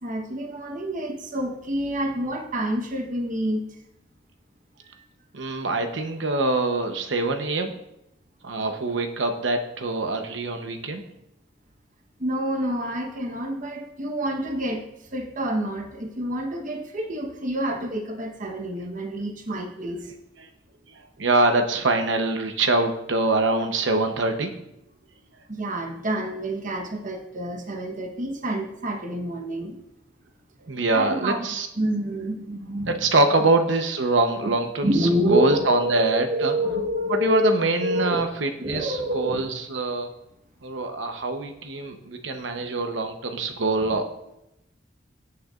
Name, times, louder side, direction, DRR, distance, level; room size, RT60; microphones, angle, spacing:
voice 1, 0.0-3.6 4.8-5.0 12.2-14.8 15.1-20.1 25.5-29.8 30.9-31.4 31.8-32.9 34.8-38.3 38.6-39.5, equal, 45° right, 2 dB, 1.1 m, -28 dB
voice 2, 5.3-7.7 8.4-11.0 20.9-24.5 30.6-31.7 32.9-36.5 37.1-40.1 40.6-44.1, right 2 dB, 75° right, 6 dB, 0.9 m, -24 dB
16.5 x 6.5 x 2.5 m, 0.86 s
head